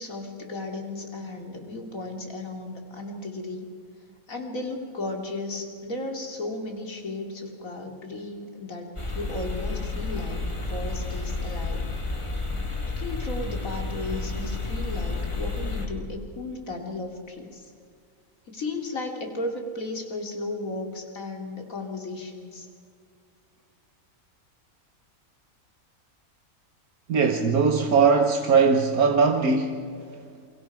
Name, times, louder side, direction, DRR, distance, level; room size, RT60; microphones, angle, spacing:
voice 1, 0.0-3.6 4.3-11.9 12.8-17.7 18.5-22.7, left 2 dB, 65° left, 2 dB, 3.3 m, -35 dB
sound 1, 9.0-15.9, left 3 dB, 20° left, 2.8 m, -31 dB
voice 2, 27.1-29.9, right 5 dB, 80° right, 4 dB, 1.7 m, -20 dB
29.0 x 23.0 x 4.9 m, 2.2 s
omnidirectional pair, 1.5 m